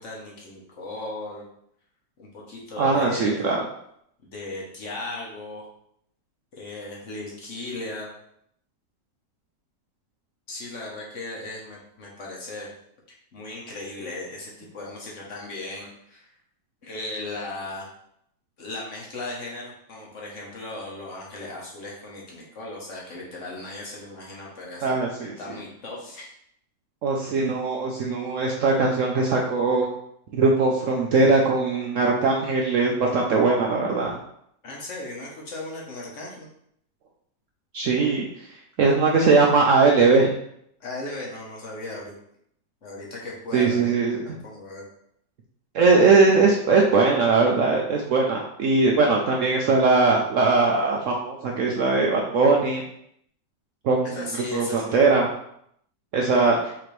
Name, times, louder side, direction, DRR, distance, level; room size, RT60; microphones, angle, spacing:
voice 1, 0.0-1.4 2.2-3.4 4.2-5.7 6.6-8.1 10.5-12.7 13.3-16.3 16.8-17.9 18.6-26.3 34.6-36.5 40.8-42.1 42.8-43.8 44.2-44.8 54.0-55.0, left 2 dB, 50° left, -3 dB, 1.2 m, -37 dB
voice 2, 2.8-3.6 24.8-25.4 27.0-29.9 30.3-34.2 37.7-38.3 38.8-40.3 43.5-44.3 45.7-52.8 53.8-54.2 54.5-55.3 56.1-56.6, right 4 dB, 70° right, -1 dB, 0.8 m, -20 dB
5.9 x 2.9 x 3.1 m, 0.72 s
omnidirectional pair, 1.8 m